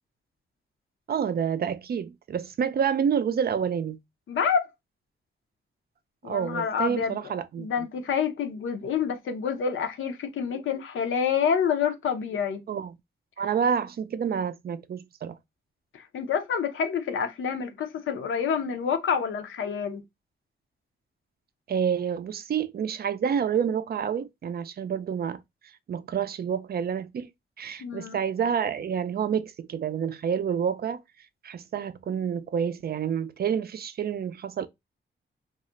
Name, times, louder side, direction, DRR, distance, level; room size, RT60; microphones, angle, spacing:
voice 1, 1.1-4.0 6.2-7.9 12.7-12.9 13.4-15.4 21.7-25.4 25.9-27.3 27.6-31.0 31.4-34.7, right 7 dB, 50° right, 0.4 m, -28 dB
voice 2, 4.3-4.7 6.2-7.2 7.6-12.6 15.9-20.0 27.8-28.2, left 7 dB, 80° left, 0.6 m, -28 dB
2.4 x 2.1 x 3.7 m
cardioid pair, 80°, 20 cm